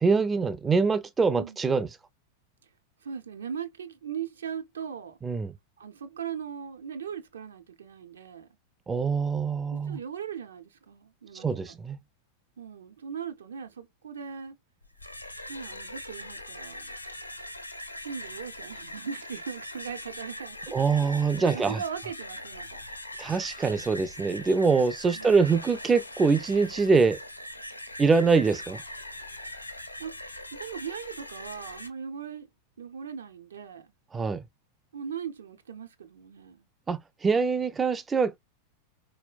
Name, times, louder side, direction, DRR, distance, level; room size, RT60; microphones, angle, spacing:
voice 1, 0.0-1.9 5.2-5.5 8.9-10.0 11.3-12.0 20.7-21.8 23.2-27.2 28.0-28.8 34.1-34.4 36.9-38.4, right 4 dB, 15° right, 0.4 m, -24 dB
voice 2, 3.0-5.2 5.8-8.5 9.7-11.7 12.6-14.6 15.5-16.9 18.0-22.8 25.1-25.4 30.0-32.5 32.8-33.9 34.9-36.7, right 7 dB, 65° right, 0.6 m, -39 dB
sound 1, 14.8-31.9, left 1 dB, 80° left, 0.7 m, -41 dB
4.2 x 2.0 x 2.3 m
figure-of-eight pair, 90°, 0 cm